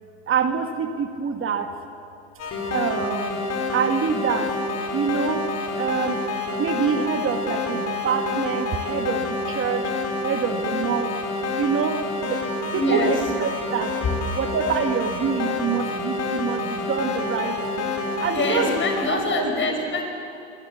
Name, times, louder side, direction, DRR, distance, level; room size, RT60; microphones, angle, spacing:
voice 1, 0.3-1.7 2.7-3.4 3.7-4.5 4.9-5.5 5.8-6.2 6.6-9.9 10.2-11.1 11.6-14.0 14.3-17.9 18.2-18.8 19.1-19.5, right 6 dB, 40° right, 6 dB, 2.1 m, -26 dB
sound 1, 2.4-19.1, left 3 dB, 55° left, 5.5 m, -28 dB
voice 2, 12.7-13.1 18.3-20.0, left 2 dB, 40° left, 4 dB, 5.9 m, -24 dB
26.5 x 21.0 x 7.2 m, 2.8 s
hypercardioid pair, 80°, 31 cm